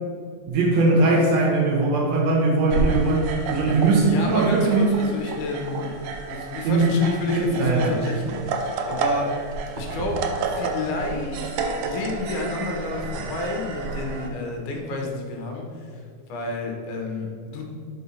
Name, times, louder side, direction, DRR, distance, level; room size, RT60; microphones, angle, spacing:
voice 1, 0.5-4.9 6.6-6.9 7.3-8.0, right 3 dB, 65° right, -2 dB, 1.9 m, -20 dB
sound 1, 2.7-14.3, right 4 dB, 90° right, 2.2 m, -30 dB
voice 2, 4.0-5.9 6.3-9.3 9.8-11.5 11.8-16.0 16.3-17.6, left 2 dB, 75° left, 1 dB, 2.4 m, -30 dB
5.4 x 4.8 x 5.5 m, 2.3 s
omnidirectional pair, 3.6 m